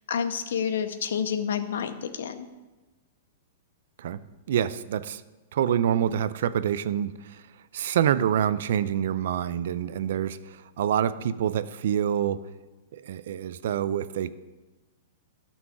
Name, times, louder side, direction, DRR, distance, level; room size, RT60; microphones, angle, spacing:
voice 1, 0.1-2.5, left 7 dB, 80° left, 10 dB, 0.7 m, -29 dB
voice 2, 4.5-5.2 5.5-7.1 7.7-10.4 10.8-12.4 12.9-14.3, right 9 dB, 60° right, 16 dB, 0.4 m, -26 dB
12.0 x 6.0 x 3.7 m, 1.2 s
supercardioid pair, 175°, 0 cm